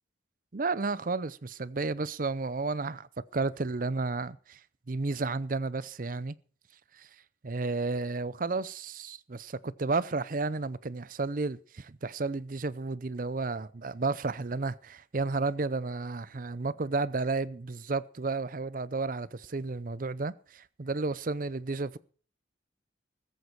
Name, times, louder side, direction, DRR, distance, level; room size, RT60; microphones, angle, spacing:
voice 1, 0.5-3.1 3.3-4.6 4.9-6.4 7.0-7.1 7.4-22.0, right 3 dB, 45° right, 0.6 m, -32 dB
14.5 x 14.5 x 4.5 m
head